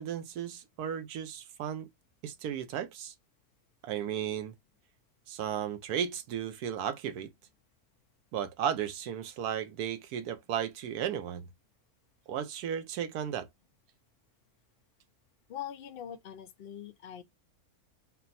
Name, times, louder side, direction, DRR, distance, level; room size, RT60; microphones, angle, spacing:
voice 1, 0.0-1.9 2.2-3.1 3.8-4.5 5.3-7.3 8.3-11.5 12.3-13.5, right 9 dB, 80° right, 1.2 m, -34 dB
voice 2, 15.5-17.2, left 10 dB, 65° left, 0.5 m, -42 dB
4.3 x 2.0 x 3.9 m
omnidirectional pair, 1.6 m